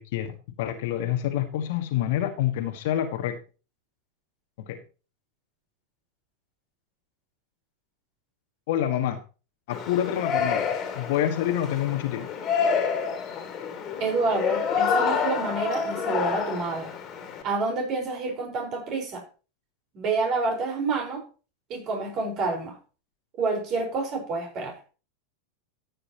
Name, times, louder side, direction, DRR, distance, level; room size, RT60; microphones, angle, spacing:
voice 1, 0.0-3.4 4.7-4.8 8.7-9.2 9.7-10.7 10.9-12.3, left 11 dB, 55° left, 1.7 m, -27 dB
Yell, 9.7-17.4, left 6 dB, 35° left, 2.7 m, -28 dB
voice 2, 14.0-16.9 17.4-19.2 19.9-21.2 21.7-22.8 23.4-24.8, right 3 dB, 40° right, 4.8 m, -28 dB
14.0 x 8.8 x 3.0 m
figure-of-eight pair, 90°, 0 cm